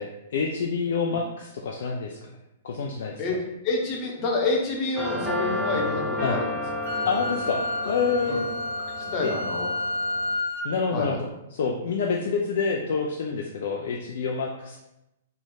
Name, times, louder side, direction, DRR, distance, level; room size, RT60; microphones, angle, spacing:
voice 1, 0.0-2.3 2.6-3.2 6.2-6.4 7.0-8.4 9.2-9.3 10.6-14.8, left 5 dB, 55° left, 0 dB, 0.4 m, -27 dB
voice 2, 3.6-6.4 6.9-7.0 7.8-7.9 8.3-8.4 9.0-9.7 10.9-11.2, left 3 dB, 35° left, -1 dB, 0.9 m, -28 dB
sound 1, 5.0-10.3, left 1 dB, 20° right, 0.8 m, -32 dB
Wind instrument woodwind instrument, 6.8-10.7, left 2 dB, 55° right, 0.6 m, -30 dB
3.2 x 2.4 x 3.8 m, 0.88 s
figure-of-eight pair, 110°, 0 cm